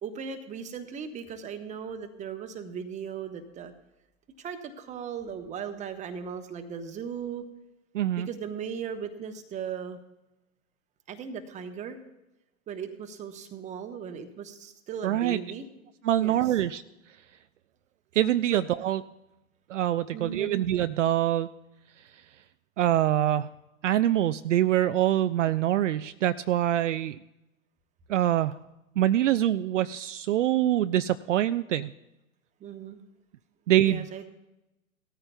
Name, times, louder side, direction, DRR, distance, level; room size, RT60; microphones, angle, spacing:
voice 1, 0.0-3.7 4.4-7.5 8.2-10.0 11.1-12.0 12.7-15.7 16.2-16.5 18.5-18.6 20.1-20.6 32.6-33.0 33.8-34.3, right 7 dB, 15° right, 7 dB, 1.0 m, -37 dB
voice 2, 7.9-8.3 15.0-15.4 16.0-16.8 18.1-19.0 19.7-21.5 22.8-23.5 23.8-27.2 28.1-28.6 29.0-31.9 33.7-34.0, right 12 dB, 60° right, 12 dB, 0.5 m, -24 dB
17.5 x 13.5 x 2.3 m, 0.95 s
figure-of-eight pair, 110°, 41 cm